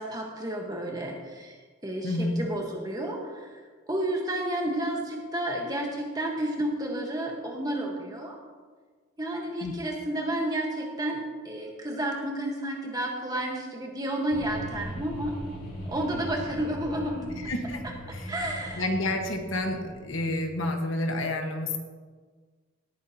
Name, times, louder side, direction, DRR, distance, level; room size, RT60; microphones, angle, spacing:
voice 1, 0.0-1.6 1.8-3.6 3.9-8.4 9.2-15.3 15.9-17.3 18.3-18.9, right 1 dB, 20° right, 0 dB, 1.4 m, -31 dB
voice 2, 2.0-2.5 9.6-9.7 17.4-18.3 18.8-21.8, left 1 dB, 80° left, 4 dB, 1.5 m, -29 dB
sound 1, 14.3-20.5, equal, 45° left, 3.6 m, -40 dB
17.5 x 9.4 x 2.9 m, 1.5 s
head